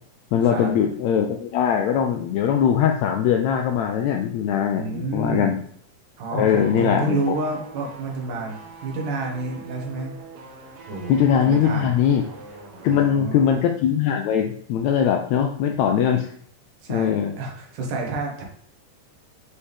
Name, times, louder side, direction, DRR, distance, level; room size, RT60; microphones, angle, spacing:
voice 1, 0.3-5.6 6.3-7.2 11.1-12.2 12.8-16.3 16.9-17.3, left 8 dB, 80° left, 4 dB, 1.6 m, -21 dB
voice 2, 4.7-5.6 6.2-8.6 8.8-10.2 10.9-11.1 11.4-11.9 12.9-13.5 16.8-18.4, right 2 dB, 80° right, 0 dB, 2.9 m, -29 dB
sound 1, 6.5-13.1 13.4-13.6, right 4 dB, 65° right, 1.6 m, -43 dB
7.1 x 4.2 x 3.4 m, 0.62 s
omnidirectional pair, 3.6 m